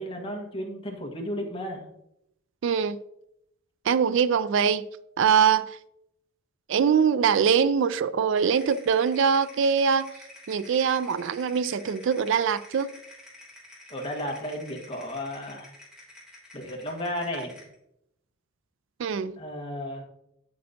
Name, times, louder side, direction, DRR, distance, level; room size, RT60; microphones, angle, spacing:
voice 1, 0.0-1.9 13.9-15.7 16.5-17.6 19.4-20.0, left 1 dB, 25° left, 1.5 m, -34 dB
voice 2, 2.6-3.0 3.9-4.8 5.2-5.7 6.7-10.1 10.5-12.9 19.0-19.3, right 7 dB, 65° right, 0.4 m, -23 dB
sound 1, 8.4-17.7, left 1 dB, 5° right, 3.0 m, -49 dB
8.6 x 8.6 x 2.8 m
head